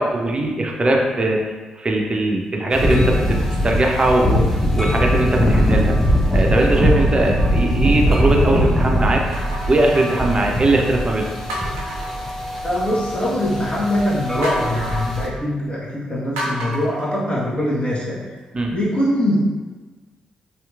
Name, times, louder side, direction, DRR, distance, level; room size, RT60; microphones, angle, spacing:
voice 1, 0.0-1.4 1.8-5.9 6.3-9.2 9.7-11.3 18.5-18.7, right 2 dB, 30° right, 0 dB, 0.5 m, -20 dB
sound 1, 2.7-15.3, equal, 10° left, 0.7 m, -21 dB
sound 2, 3.8-4.3 4.9-5.1 6.7-8.2 9.3-10.7 11.1-11.2 11.5-13.0 14.4-15.2 16.4-17.9 18.4-18.5, right 1 dB, 85° right, 0.4 m, -32 dB
voice 2, 12.6-18.2 18.7-19.4, left 1 dB, 35° left, -7 dB, 1.2 m, -22 dB
2.8 x 2.8 x 2.3 m, 1.3 s
hypercardioid pair, 40°, 3 cm